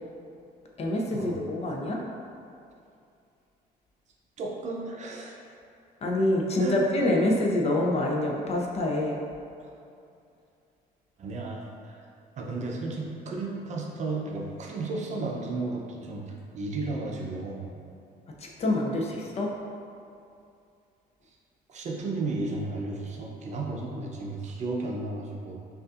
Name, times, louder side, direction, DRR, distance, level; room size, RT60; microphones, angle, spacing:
voice 1, 0.8-2.0 6.0-9.2 18.4-19.5, left 1 dB, 40° left, -1 dB, 0.5 m, -26 dB
voice 2, 4.4-5.4 6.6-6.8 9.6-9.7 11.2-12.0 12.4-17.7 21.7-25.6, right 3 dB, 45° right, -1 dB, 0.6 m, -33 dB
5.2 x 2.5 x 2.4 m, 2.5 s
cardioid pair, 110°, 17 cm